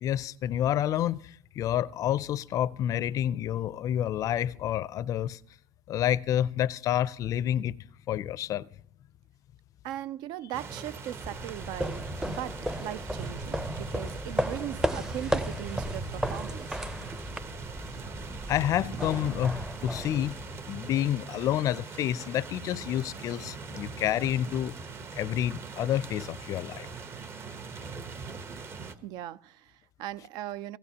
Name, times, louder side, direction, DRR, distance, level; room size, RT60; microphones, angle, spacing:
voice 1, 0.0-5.4 5.9-7.8 8.1-8.7 18.5-20.4 20.7-24.8 25.2-26.9, left 11 dB, 45° left, 0.4 m, -29 dB
voice 2, 9.8-16.8 29.0-30.8, right 13 dB, 60° right, 0.5 m, -39 dB
sound 1, 10.5-28.9, right 4 dB, 30° right, 0.9 m, -41 dB
sound 2, 11.2-20.8, equal, 5° right, 0.6 m, -35 dB
17.5 x 16.5 x 2.9 m
supercardioid pair, 115°, 8 cm